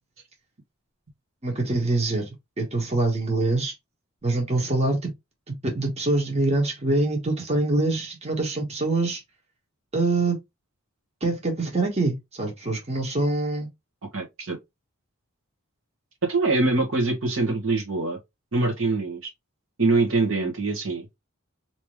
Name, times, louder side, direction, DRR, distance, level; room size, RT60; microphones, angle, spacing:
voice 1, 1.4-3.7 4.2-5.1 5.6-9.2 9.9-10.4 11.2-13.7, right 2 dB, 30° right, 1.3 m, -24 dB
voice 2, 14.1-14.6 16.2-18.2 18.5-19.3 19.8-21.0, right 3 dB, 70° right, 1.2 m, -24 dB
3.5 x 3.0 x 3.0 m
head